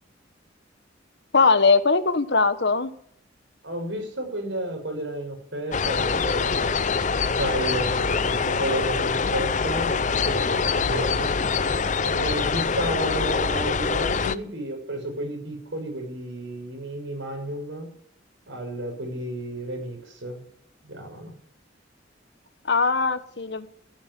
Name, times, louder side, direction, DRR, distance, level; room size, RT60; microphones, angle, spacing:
voice 1, 1.3-2.9 22.7-23.7, left 4 dB, 60° left, 12 dB, 1.2 m, -20 dB
voice 2, 3.6-11.3 12.0-17.9 18.5-20.4 20.9-21.3, right 1 dB, 70° right, 3 dB, 6.5 m, -32 dB
sound 1, 5.7-14.4, left 5 dB, 40° left, 0.6 m, -24 dB
15.0 x 9.7 x 9.6 m, 0.66 s
head